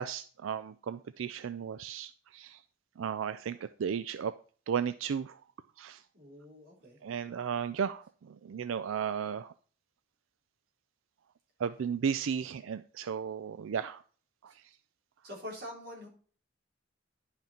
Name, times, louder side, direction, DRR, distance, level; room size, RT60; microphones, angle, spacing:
voice 1, 0.0-2.6 3.0-4.3 4.7-5.4 5.8-6.0 7.0-9.5 11.6-14.0 14.4-14.6, right 7 dB, 85° right, 13 dB, 0.4 m, -34 dB
voice 2, 6.1-7.0 15.2-16.1, left 1 dB, 50° right, -3 dB, 3.9 m, -45 dB
10.5 x 5.8 x 4.3 m, 0.43 s
head